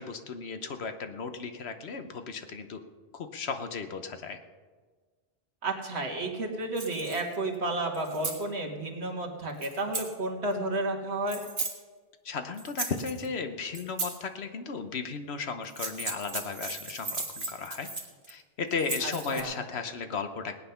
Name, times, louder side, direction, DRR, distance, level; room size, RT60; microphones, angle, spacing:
voice 1, 0.0-2.8 3.1-4.4 12.2-17.9 18.3-20.6, left 5 dB, 75° left, 8 dB, 1.2 m, -35 dB
voice 2, 5.6-11.4 19.0-19.5, right 2 dB, 80° right, 1 dB, 2.1 m, -32 dB
sound 1, 6.8-7.4 7.9-8.4 9.6-10.1 11.3-11.7 12.6-13.3 13.7-14.2 15.6-18.3 18.7-19.4, right 3 dB, 50° right, 1.8 m, -36 dB
18.5 x 9.4 x 5.7 m, 1.5 s
omnidirectional pair, 1.1 m